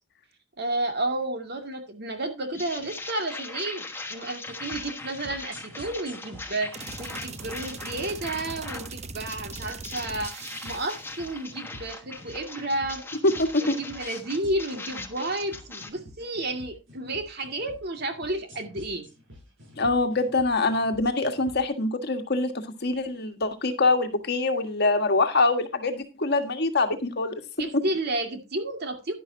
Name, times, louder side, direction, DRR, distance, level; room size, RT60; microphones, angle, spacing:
voice 1, 0.6-3.8 4.1-13.0 13.6-19.1 27.6-29.1, right 2 dB, 55° right, 2.2 m, -31 dB
sound 1, 2.5-8.9 9.3-15.9, left 3 dB, 10° left, 1.3 m, -40 dB
sound 2, 4.5-21.6, left 1 dB, 85° right, 7.0 m, -48 dB
sound 3, 6.7-11.2, right 4 dB, 35° right, 0.8 m, -40 dB
voice 2, 13.2-13.8 19.8-27.3 27.7-27.8, left 3 dB, 55° left, 1.6 m, -24 dB
11.0 x 11.0 x 2.7 m
head